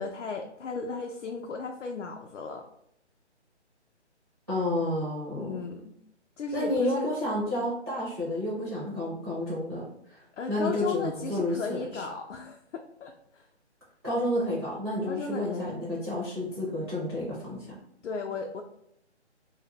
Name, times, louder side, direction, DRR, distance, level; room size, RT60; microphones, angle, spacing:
voice 1, 0.0-2.6 5.4-5.9 6.4-7.1 10.4-13.4 15.1-15.7 18.0-18.6, left 4 dB, 90° left, 2 dB, 0.5 m, -35 dB
voice 2, 4.5-5.6 6.5-10.2 10.5-12.1 14.0-17.8, left 1 dB, 20° right, -9 dB, 0.4 m, -30 dB
2.1 x 2.0 x 3.3 m, 0.73 s
hypercardioid pair, 155°, 35 cm